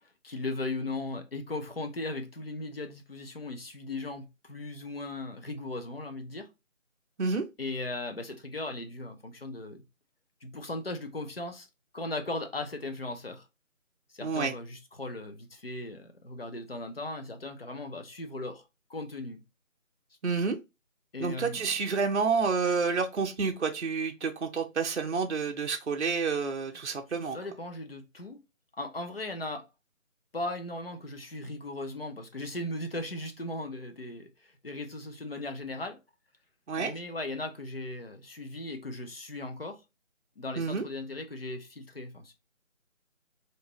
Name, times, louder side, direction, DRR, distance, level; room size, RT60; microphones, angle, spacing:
voice 1, 0.2-6.5 7.6-9.8 10.4-11.7 11.9-13.4 14.1-18.6 18.9-19.4 21.1-21.7 27.2-28.4 28.8-29.7 30.3-36.0 36.8-39.8 40.4-42.3, left 2 dB, 45° left, 0.7 m, -37 dB
voice 2, 14.2-14.5 20.2-20.6 21.2-27.4 36.7-36.9 40.6-40.8, right 5 dB, 60° right, 0.6 m, -29 dB
3.7 x 2.6 x 3.0 m
figure-of-eight pair, 170°, 40 cm